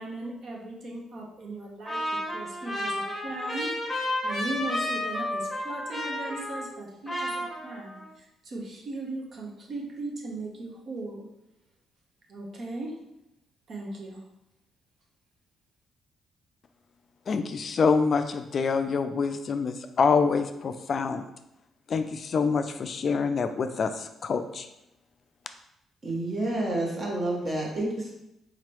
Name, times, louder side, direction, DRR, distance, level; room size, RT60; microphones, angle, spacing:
voice 1, 0.0-2.0 2.3-3.7 4.2-11.3 12.3-12.9 13.7-14.2, right 2 dB, 55° right, 0 dB, 0.9 m, -37 dB
Trumpet, 1.9-6.8 7.1-8.1, left 1 dB, ahead, 1.3 m, -32 dB
voice 2, 17.3-21.2 21.9-24.7, left 5 dB, 50° left, 8 dB, 0.3 m, -26 dB
voice 3, 26.0-28.1, right 1 dB, 40° right, -3 dB, 1.4 m, -29 dB
4.0 x 3.0 x 3.0 m, 0.85 s
cardioid pair, 90°, 0 cm